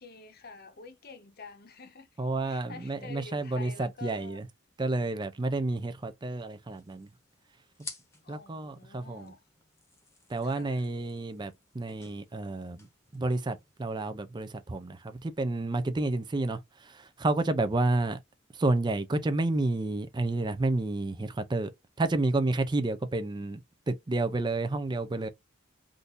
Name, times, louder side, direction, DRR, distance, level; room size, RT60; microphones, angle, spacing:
voice 1, 0.0-4.4 8.2-9.4 10.4-10.9, left 4 dB, 50° left, 0.9 m, -48 dB
voice 2, 2.2-4.5 4.8-7.1 8.3-9.3 10.3-12.9 13.1-18.2 18.5-21.7 22.0-23.6 23.9-25.3, right 2 dB, 20° right, 0.4 m, -30 dB
sound 1, 6.4-14.0, left 3 dB, 15° left, 0.9 m, -52 dB
3.7 x 2.6 x 2.5 m
head